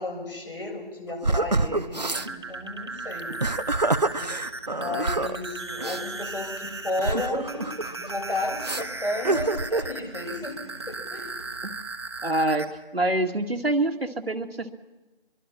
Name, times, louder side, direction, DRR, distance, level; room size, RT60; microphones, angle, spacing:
voice 1, 0.0-3.3 4.1-4.3 4.8-10.6 10.9-11.3, left 2 dB, 65° left, 2 dB, 7.6 m, -33 dB
sound 1, 1.2-2.3 3.2-5.4 5.8-6.0 7.0-8.1 8.6-8.8 9.2-9.9, right 2 dB, 45° right, 0.7 m, -26 dB
sound 2, 2.0-12.7, right 2 dB, 25° right, 1.2 m, -37 dB
voice 2, 12.2-12.7 12.9-14.7, right 1 dB, 80° right, 5 dB, 2.0 m, -25 dB
24.5 x 23.0 x 6.1 m, 1.1 s
figure-of-eight pair, 170°, 30 cm